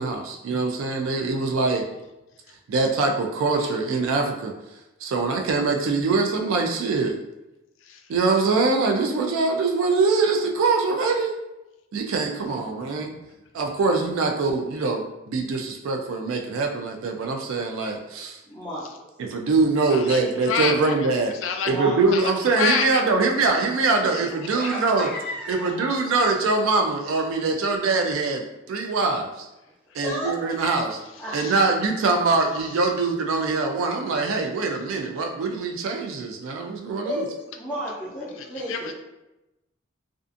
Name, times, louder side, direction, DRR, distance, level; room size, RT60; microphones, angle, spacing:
voice 1, 0.0-1.8 2.7-7.2 8.1-11.3 11.9-13.1 13.5-18.4 19.2-21.3 21.7-25.1 25.5-29.5 29.9-31.0 31.3-37.3, right 3 dB, 85° right, 2 dB, 0.3 m, -23 dB
voice 2, 18.4-18.9 21.6-22.0 24.5-25.7 30.0-30.3 31.2-31.6 37.0-38.9, equal, 10° left, -12 dB, 0.5 m, -32 dB
voice 3, 20.5-20.9 21.4-21.7 22.1-22.2 22.6-23.0 31.3-31.5 38.4-38.9, left 6 dB, 75° left, 5 dB, 0.3 m, -26 dB
2.4 x 2.4 x 2.4 m, 0.98 s
head